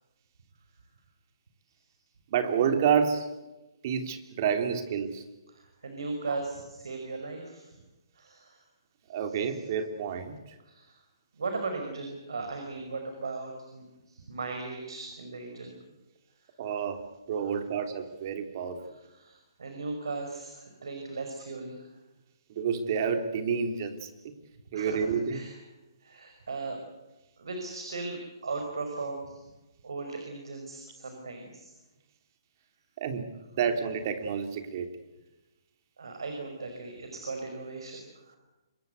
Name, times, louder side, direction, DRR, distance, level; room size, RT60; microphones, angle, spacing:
voice 1, 2.3-3.3 3.8-5.2 6.3-6.4 9.1-10.3 16.6-17.0 17.3-18.8 22.5-24.3 24.7-25.4 33.0-34.9, right 7 dB, 45° right, 7 dB, 3.3 m, -29 dB
voice 2, 5.5-7.7 8.2-8.6 9.3-9.6 10.7-11.0 11.3-15.7 17.4-17.5 18.8-21.9 24.7-25.6 26.0-26.8 27.4-29.4 29.8-31.7 36.0-38.4, right 3 dB, 80° right, 4 dB, 5.4 m, -38 dB
26.5 x 22.0 x 8.2 m, 1.0 s
hypercardioid pair, 145°, 2 cm